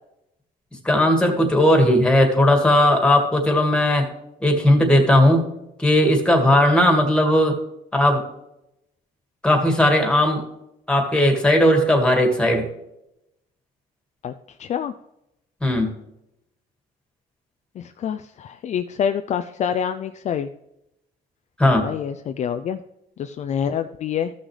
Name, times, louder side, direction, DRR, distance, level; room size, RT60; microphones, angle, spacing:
voice 1, 0.8-4.1 4.4-5.5 5.8-7.6 7.9-8.2 9.4-10.4 10.9-12.7 15.6-15.9 21.6-21.9, left 1 dB, 5° left, 3 dB, 2.0 m, -17 dB
voice 2, 14.6-14.9 17.8-20.5 21.8-22.8 23.2-24.3, left 8 dB, 45° left, 8 dB, 0.4 m, -26 dB
14.0 x 6.2 x 3.3 m, 0.85 s
cardioid pair, 110°, 17 cm